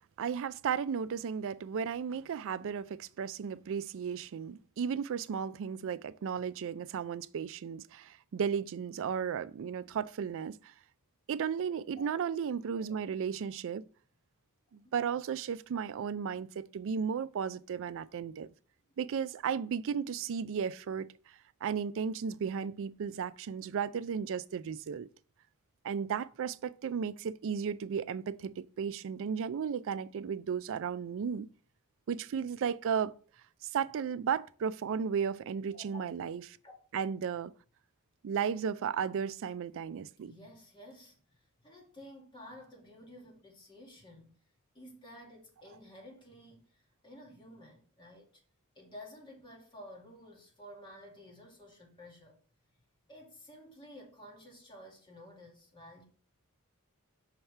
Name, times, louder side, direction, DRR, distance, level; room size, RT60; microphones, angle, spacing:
voice 1, 0.2-10.7 11.3-13.8 14.7-18.5 19.0-21.1 21.6-25.1 25.8-31.5 32.1-33.1 33.6-36.4 36.9-37.5 38.2-40.3, right 7 dB, 60° right, 0.4 m, -34 dB
voice 2, 12.5-13.0 35.7-36.1 36.6-36.7 40.2-44.3 44.7-48.4 48.8-52.4 53.1-56.1, left 1 dB, 20° left, 2.2 m, -52 dB
5.7 x 5.6 x 3.3 m
head